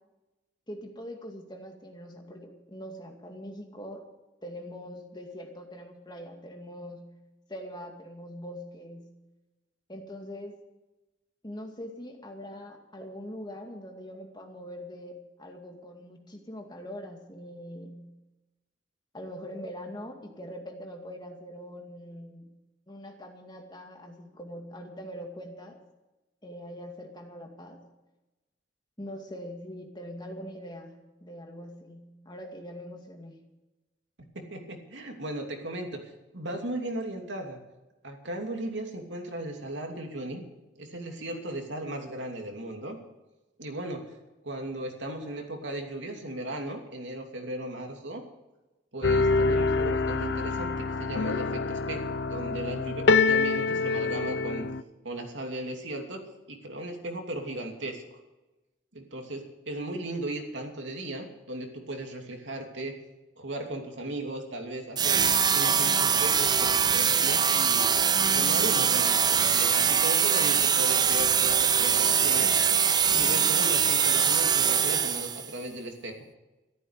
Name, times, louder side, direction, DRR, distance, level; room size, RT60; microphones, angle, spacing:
voice 1, 0.7-4.0 4.4-7.2 7.5-9.1 9.9-10.6 11.4-18.1 19.1-22.6 22.9-25.8 26.4-27.9 29.0-33.4, equal, 25° left, 2 dB, 2.3 m, -42 dB
voice 2, 34.3-36.0 36.3-37.6 38.0-40.4 40.7-43.0 43.6-44.1 44.4-48.2 48.9-54.7 55.0-58.0 58.9-63.0 63.4-68.0 68.3-72.6 73.1-76.1, right 1 dB, 80° right, 3 dB, 2.9 m, -36 dB
sound 1, 49.0-54.8, left 4 dB, 70° left, 0.7 m, -26 dB
sound 2, 65.0-75.5, right 7 dB, 20° right, 0.5 m, -23 dB
14.0 x 13.5 x 6.6 m, 1.1 s
head